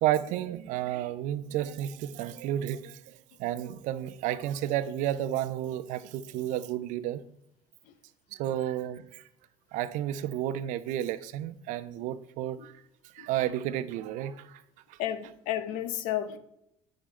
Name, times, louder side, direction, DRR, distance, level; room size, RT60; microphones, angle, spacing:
voice 1, 0.0-7.2 8.3-9.2 9.7-12.7 13.1-14.6, right 12 dB, 70° right, 0.5 m, -32 dB
voice 2, 15.0-16.4, left 11 dB, 75° left, 0.7 m, -32 dB
8.6 x 6.3 x 3.2 m
hypercardioid pair, 65°, 13 cm